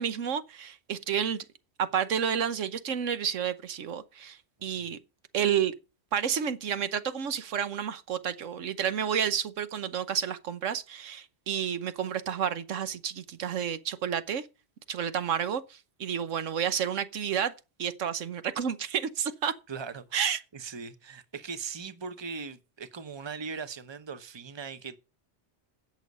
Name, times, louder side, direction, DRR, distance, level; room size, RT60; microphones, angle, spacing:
voice 1, 0.0-1.4 1.8-5.0 5.3-5.7 6.1-14.5 14.9-17.5 17.8-19.5 20.1-20.4, right 8 dB, 85° right, 1.3 m, -30 dB
voice 2, 19.7-25.0, right 5 dB, 25° right, 0.9 m, -40 dB
16.5 x 6.4 x 5.4 m
omnidirectional pair, 1.3 m